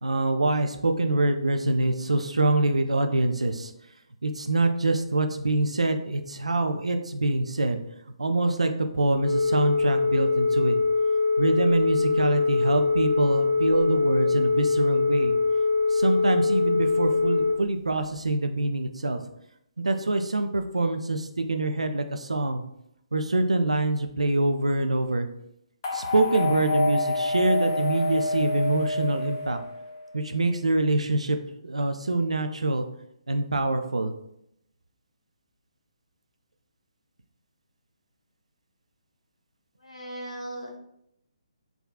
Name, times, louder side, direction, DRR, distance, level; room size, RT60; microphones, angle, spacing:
voice 1, 0.0-3.7 4.2-7.8 8.2-10.8 11.4-15.4 15.9-19.2 19.8-22.6 23.1-25.3 25.9-29.6 30.1-31.4 31.6-32.9 33.3-34.1, right 2 dB, 75° right, 7 dB, 0.3 m, -25 dB
Telephone, 9.2-17.5, left 4 dB, 55° left, 1.0 m, -23 dB
sound 1, 25.8-30.1, left 2 dB, 30° left, 0.5 m, -28 dB
voice 2, 39.8-40.8, right 1 dB, 80° left, -1 dB, 0.9 m, -38 dB
3.6 x 2.3 x 2.3 m, 0.77 s
figure-of-eight pair, 140°, 3 cm